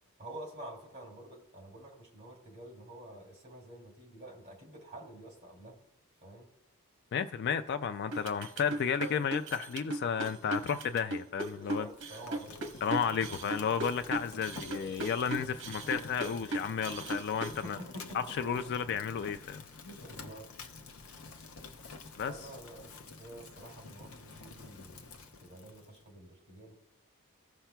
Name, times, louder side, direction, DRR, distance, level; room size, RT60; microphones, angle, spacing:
voice 1, 0.2-5.7 6.2-6.5 11.6-12.6 17.6-18.4 19.8-20.5 22.2-26.7, right 1 dB, 30° right, 2.7 m, -48 dB
voice 2, 7.1-11.9 12.8-17.8 18.1-19.6 22.2-22.3, left 7 dB, 50° left, 0.3 m, -32 dB
sound 1, 8.1-17.6, right 2 dB, 60° right, 0.9 m, -37 dB
Fire, 11.6-26.0, left 4 dB, 65° left, 0.7 m, -50 dB
15.5 x 5.7 x 2.2 m
head